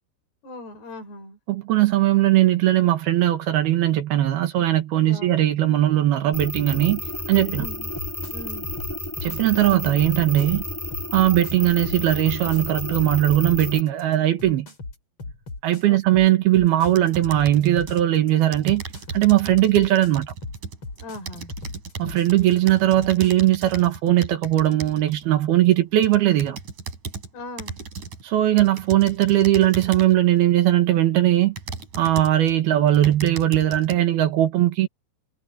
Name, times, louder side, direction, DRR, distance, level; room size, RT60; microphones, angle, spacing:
voice 1, 0.4-1.4 5.0-5.3 7.6-7.9 8.3-8.7 15.8-16.3 21.0-21.5 27.3-27.8, left 1 dB, 75° left, 6.7 m, -39 dB
voice 2, 1.5-7.0 7.3-7.7 9.2-10.6 11.1-14.7 15.6-18.8 19.1-20.3 22.0-26.6 28.2-31.6 32.0-34.9, right 13 dB, 70° right, 3.4 m, -19 dB
sound 1, 6.3-13.8, left 1 dB, 5° left, 1.9 m, -32 dB
sound 2, 7.6-23.3, left 3 dB, 35° left, 5.1 m, -38 dB
sound 3, 16.8-18.1 18.5-25.2 25.8-27.3 27.6-28.2 28.6-30.2 30.8-30.9 31.6-32.5 32.9-34.0, right 5 dB, 50° right, 5.2 m, -36 dB
omnidirectional pair, 4.7 m